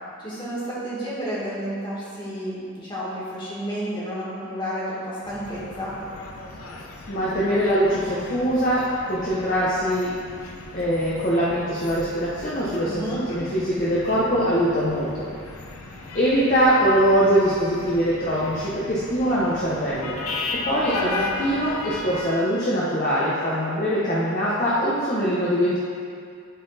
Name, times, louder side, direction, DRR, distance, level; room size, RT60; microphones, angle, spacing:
voice 1, 0.2-5.9 12.9-13.2 20.7-21.2, equal, 20° left, -9 dB, 2.0 m, -31 dB
sound 1, 5.2-22.3, left 3 dB, 90° left, 0.8 m, -36 dB
voice 2, 7.1-10.1 10.7-15.3 16.1-20.2 20.5-25.8, equal, 35° left, -8 dB, 0.8 m, -22 dB
11.0 x 3.9 x 4.1 m, 2.3 s
head